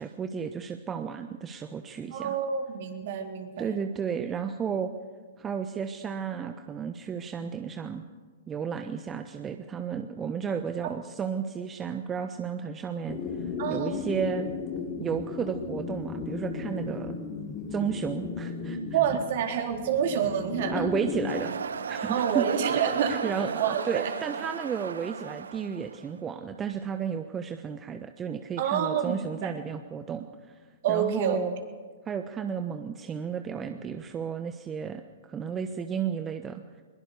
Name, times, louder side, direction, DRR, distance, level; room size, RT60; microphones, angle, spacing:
voice 1, 0.0-2.3 3.6-4.9 5.4-8.0 8.5-13.2 13.7-14.5 15.0-17.1 17.7-19.0 20.7-21.6 21.9-22.5 22.8-30.3 30.9-31.6 32.1-35.0 35.3-36.6, right 7 dB, 20° right, 8 dB, 1.0 m, -33 dB
voice 2, 2.1-3.7 13.6-14.0 18.9-20.9 22.1-24.1 28.6-29.5 30.8-31.4, right 8 dB, 50° right, 3 dB, 3.8 m, -28 dB
sound 1, 13.1-21.4, left 5 dB, 35° left, 3.3 m, -35 dB
sound 2, 21.3-26.1, right 6 dB, 70° right, 1.0 m, -34 dB
22.0 x 21.5 x 6.8 m, 1.5 s
figure-of-eight pair, 115°, 0 cm